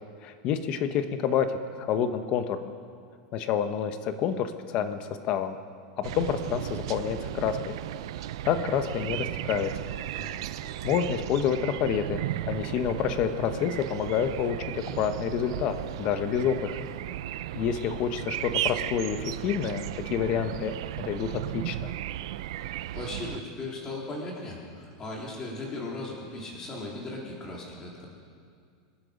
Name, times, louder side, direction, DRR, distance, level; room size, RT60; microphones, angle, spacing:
voice 1, 0.2-2.7 3.3-5.6 6.0-7.8 8.4-9.7 10.8-16.9 17.5-19.8 20.1-21.9, left 8 dB, 40° left, 9 dB, 1.0 m, -28 dB
sound 1, 6.0-23.4, right 13 dB, 70° right, 0.5 m, -35 dB
voice 2, 22.5-28.1, left 2 dB, 20° left, -3 dB, 3.6 m, -38 dB
26.0 x 10.5 x 5.2 m, 2.2 s
supercardioid pair, 160°, 3 cm